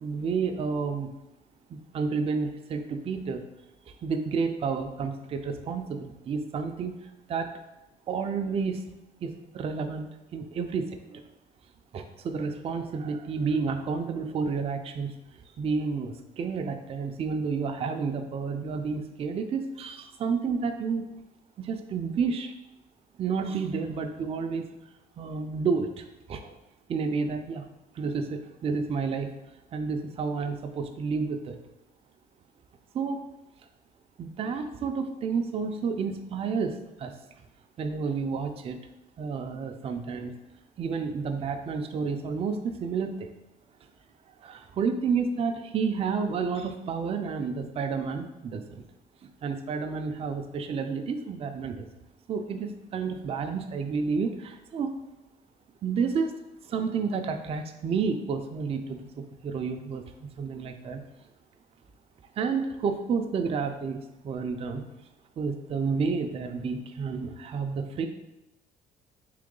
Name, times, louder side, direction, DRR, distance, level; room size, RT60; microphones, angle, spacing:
voice 1, 0.0-1.1 1.7-3.4 4.0-7.5 8.1-8.8 9.2-11.2 11.9-21.1 21.6-22.5 23.2-24.7 25.2-26.5 26.9-27.7 27.9-29.3 29.7-31.6 32.9-33.2 34.2-37.1 37.8-38.8 39.2-40.3 40.8-43.3 44.4-48.8 49.2-51.9 52.3-54.9 55.8-56.3 56.6-61.0 62.4-64.8 65.4-68.1, right 5 dB, 35° right, 6 dB, 0.4 m, -30 dB
3.8 x 3.0 x 3.8 m, 0.93 s
cardioid pair, 110°, 17 cm